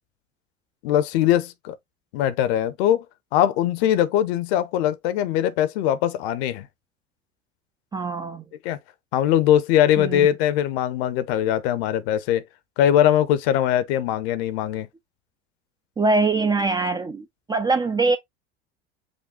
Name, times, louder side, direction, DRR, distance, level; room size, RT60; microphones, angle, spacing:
voice 1, 0.8-1.8 2.1-3.0 3.3-6.7 8.6-8.8 9.1-12.4 12.8-14.9, left 11 dB, 55° left, 0.8 m, -21 dB
voice 2, 7.9-8.4 10.0-10.3 16.0-18.2, right 3 dB, 10° right, 0.4 m, -23 dB
5.2 x 2.2 x 3.6 m
figure-of-eight pair, 80°, 37 cm